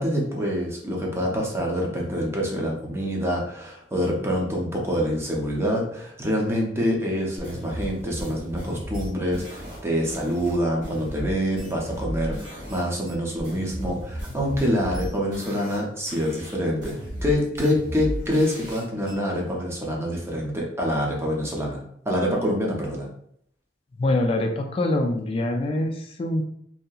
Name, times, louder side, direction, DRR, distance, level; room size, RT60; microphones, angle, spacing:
voice 1, 0.0-17.0 17.2-23.1, equal, 15° right, -2 dB, 0.6 m, -26 dB
sound 1, 7.4-12.8 13.1-19.1, equal, 45° right, 1.2 m, -35 dB
voice 2, 24.0-26.4, left 1 dB, 35° left, 4 dB, 0.3 m, -24 dB
2.7 x 2.7 x 2.3 m, 0.69 s
head